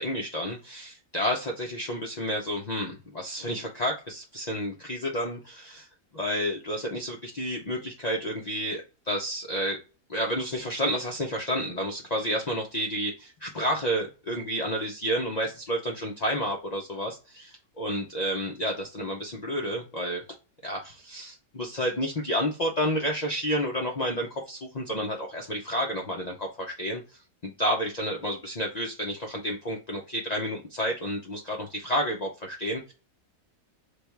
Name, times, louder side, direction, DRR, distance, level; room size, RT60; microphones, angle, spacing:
voice 1, 0.0-5.9 6.1-9.8 10.1-20.2 20.6-27.0 27.4-32.9, equal, 85° left, -1 dB, 0.3 m, -30 dB
3.3 x 2.3 x 4.3 m, 0.31 s
omnidirectional pair, 1.6 m